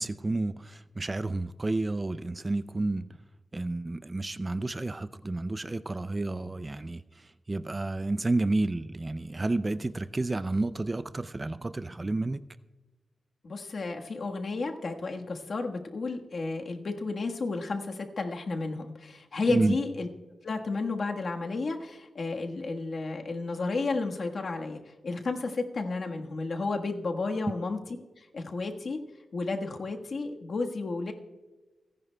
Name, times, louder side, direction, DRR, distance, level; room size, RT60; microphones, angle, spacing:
voice 1, 0.0-3.2 3.5-12.4 19.5-19.8, right 2 dB, 25° right, 0.3 m, -30 dB
voice 2, 13.4-20.1 20.4-27.8 28.2-29.0 29.3-31.1, left 3 dB, 55° left, 1.4 m, -32 dB
29.0 x 11.0 x 2.2 m
wide cardioid pair, 135°, 0 cm